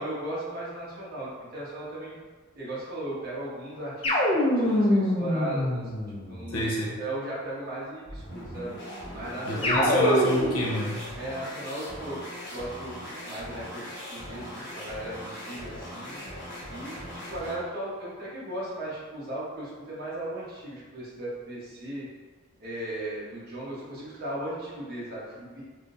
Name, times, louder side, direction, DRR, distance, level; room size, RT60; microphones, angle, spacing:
voice 1, 0.0-2.2 2.5-4.2 4.5-5.9 6.3-6.7 7.0-8.7 9.1-9.9 11.1-12.2 12.5-16.2 16.7-22.1 22.6-25.6, right 1 dB, 45° right, -7 dB, 0.9 m, -36 dB
sound 1, 4.0-6.5 9.6-10.7, left 1 dB, 25° left, 0.4 m, -24 dB
voice 2, 6.5-7.0 9.4-11.1, equal, 80° left, -3 dB, 0.7 m, -27 dB
sound 2, 8.0-17.7, equal, 55° left, 1.2 m, -40 dB
3.5 x 2.6 x 2.5 m, 1.4 s
head